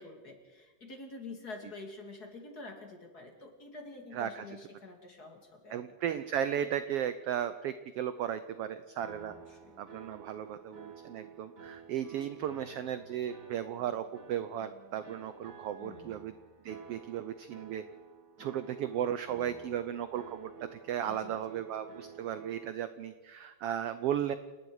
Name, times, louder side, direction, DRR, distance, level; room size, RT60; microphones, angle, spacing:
voice 1, 0.0-5.9 9.3-9.8 15.8-16.1 21.1-21.6, left 3 dB, 35° left, 3 dB, 2.5 m, -47 dB
voice 2, 4.1-4.4 5.7-9.3 9.8-16.4 16.6-17.8 18.4-24.3, right 10 dB, 75° right, 12 dB, 1.4 m, -35 dB
sound 1, 9.0-22.7, right 6 dB, 35° right, 2.7 m, -51 dB
29.0 x 19.0 x 4.8 m, 1.3 s
omnidirectional pair, 3.5 m